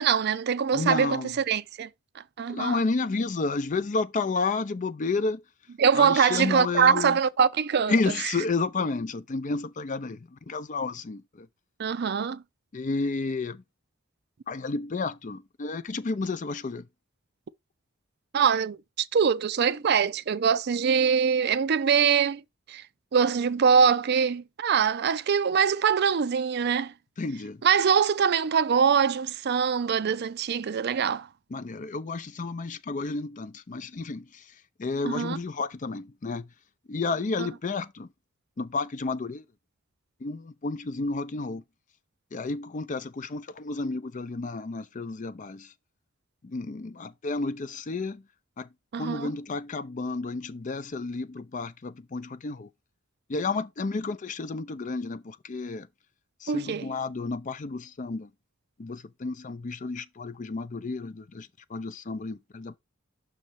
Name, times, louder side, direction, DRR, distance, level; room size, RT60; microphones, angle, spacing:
voice 1, 0.0-1.2 1.5-1.9 2.4-2.8 5.8-7.9 11.8-12.4 18.3-22.4 22.7-22.8 23.1-26.9 27.6-31.3 35.0-35.4 48.9-49.3 56.5-56.9, right 6 dB, 50° right, 0.4 m, -23 dB
voice 2, 0.7-1.4 2.5-5.4 5.9-7.2 7.9-11.5 12.7-13.6 14.5-16.9 27.2-27.6 31.5-36.5 36.9-38.1 38.6-39.4 40.2-41.6 42.3-45.7 46.4-48.2 48.6-48.7 49.0-52.7 53.3-55.9 56.4-58.3 58.8-62.8, left 3 dB, 40° left, 0.5 m, -31 dB
6.3 x 3.2 x 5.7 m
head